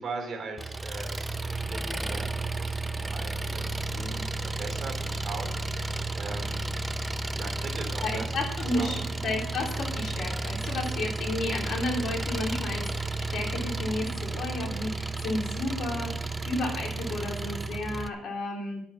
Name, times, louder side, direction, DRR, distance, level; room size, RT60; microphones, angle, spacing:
voice 1, 0.0-8.4 8.7-9.0, right 3 dB, 35° right, 3 dB, 3.8 m, -41 dB
Engine, 0.6-18.1, right 2 dB, 15° right, 0.6 m, -32 dB
voice 2, 3.9-4.2 8.0-16.1 16.5-18.8, left 2 dB, 60° left, 0 dB, 3.5 m, -32 dB
11.0 x 8.8 x 5.9 m, 0.71 s
cardioid pair, 105°, 0 cm